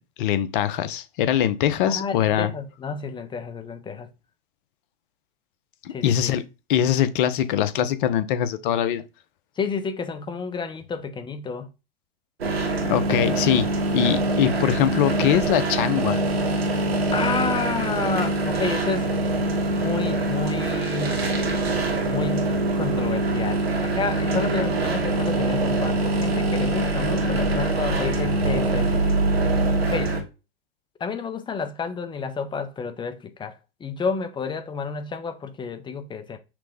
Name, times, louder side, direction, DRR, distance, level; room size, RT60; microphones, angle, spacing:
voice 1, 0.2-2.5 5.8-6.4 6.7-9.0 12.9-13.7 13.9-16.2, left 10 dB, 55° left, 0.7 m, -22 dB
voice 2, 1.9-4.1 5.9-6.4 9.6-11.7 17.1-19.1 19.7-21.3 22.1-29.0 29.8-30.2 31.0-36.4, left 5 dB, 15° left, 0.6 m, -30 dB
sound 1, 12.4-30.2, right 2 dB, 90° right, 1.3 m, -24 dB
5.9 x 2.1 x 3.3 m
hypercardioid pair, 105°, 30 cm